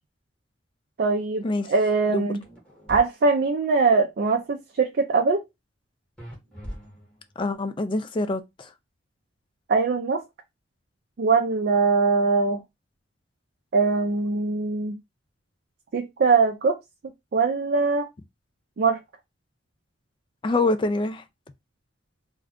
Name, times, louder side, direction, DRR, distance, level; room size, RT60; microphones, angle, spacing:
voice 1, 1.0-2.4 2.9-5.4 9.7-10.2 11.2-12.6 13.7-15.0 15.9-16.8 17.3-18.1 18.8-19.0, right 4 dB, 55° right, 0.4 m, -22 dB
sound 1, 2.4-3.0 6.2-7.3, equal, 5° left, 1.1 m, -40 dB
voice 2, 7.4-8.4 20.4-21.2, left 2 dB, 25° left, 0.3 m, -25 dB
2.4 x 2.3 x 3.5 m
head